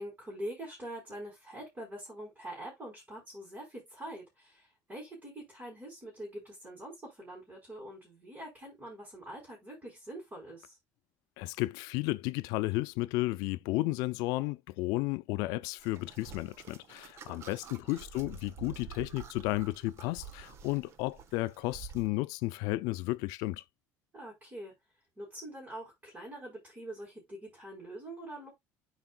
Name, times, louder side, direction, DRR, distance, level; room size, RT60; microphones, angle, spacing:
voice 1, 0.0-10.8 17.3-17.9 24.1-24.7 25.2-28.5, right 1 dB, 20° right, 4.8 m, -44 dB
voice 2, 11.4-23.6, left 20 dB, 85° left, 0.5 m, -33 dB
sound 1, 15.8-22.1, right 7 dB, 45° right, 1.1 m, -49 dB
12.5 x 4.7 x 2.4 m
cardioid pair, 145°, 6 cm